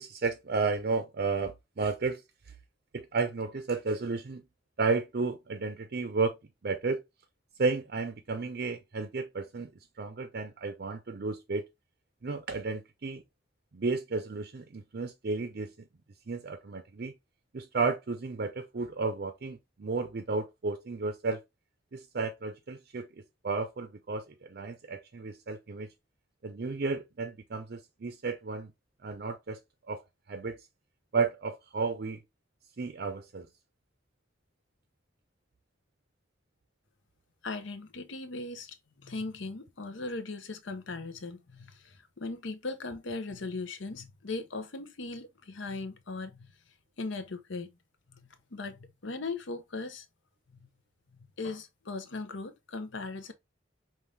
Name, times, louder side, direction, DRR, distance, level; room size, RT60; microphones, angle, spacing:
voice 1, 0.0-2.2 2.9-4.4 4.8-6.4 6.6-7.0 7.6-9.7 10.0-11.6 12.2-13.2 13.7-15.7 16.3-17.1 17.5-21.4 21.9-23.1 23.4-25.9 26.4-28.7 29.0-29.6 29.9-30.0 30.3-30.6 31.1-32.2 32.8-33.5, right 4 dB, 55° right, 0.5 m, -32 dB
voice 2, 37.4-46.5 47.0-47.7 48.1-50.1 50.5-50.7 51.4-53.3, left 3 dB, 75° left, 0.8 m, -38 dB
5.5 x 2.6 x 3.2 m
head